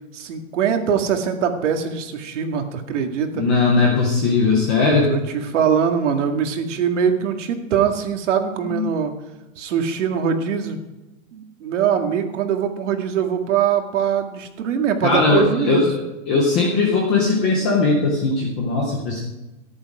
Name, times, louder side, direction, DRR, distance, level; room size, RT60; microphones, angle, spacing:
voice 1, 0.1-3.5 5.1-9.2 9.6-10.8 11.3-15.9, right 7 dB, 60° right, 5 dB, 2.1 m, -22 dB
voice 2, 3.3-5.1 8.6-8.9 15.0-16.0 16.3-19.2, left 3 dB, 10° left, -1 dB, 0.4 m, -19 dB
14.0 x 10.5 x 4.9 m, 1.0 s
hypercardioid pair, 160°, 41 cm